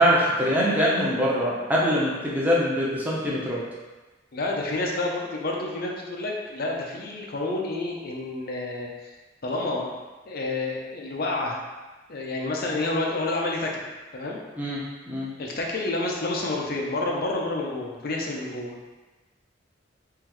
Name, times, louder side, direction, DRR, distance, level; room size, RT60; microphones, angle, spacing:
voice 1, 0.0-3.6 14.6-15.3, equal, 10° right, -6 dB, 0.8 m, -23 dB
voice 2, 4.3-8.9 9.4-9.9 10.2-11.6 12.1-13.8 14.1-14.4 15.4-18.7, left 2 dB, 55° left, -1 dB, 0.6 m, -29 dB
3.8 x 3.1 x 3.0 m, 1.2 s
head